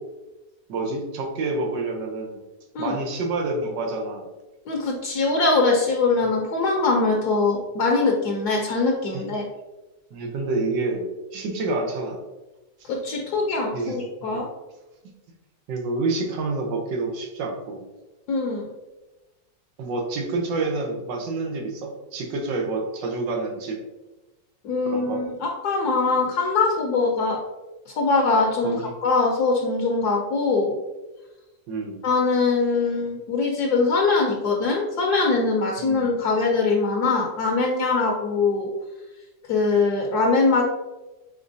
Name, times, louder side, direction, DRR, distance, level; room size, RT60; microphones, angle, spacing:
voice 1, 0.7-2.4 2.8-4.2 9.1-9.2 10.1-12.2 13.7-14.0 14.3-14.4 15.0-15.1 15.7-17.8 19.8-23.8 24.9-25.2 28.6-28.9 31.7-32.0 35.8-36.1, right 3 dB, 90° right, 2 dB, 1.5 m, -28 dB
voice 2, 4.7-9.4 12.8-14.5 18.3-18.7 24.6-27.4 27.9-30.7 32.0-38.7 39.5-40.6, left 3 dB, 70° left, 0 dB, 1.1 m, -22 dB
5.1 x 4.0 x 2.6 m, 1.1 s
omnidirectional pair, 1.9 m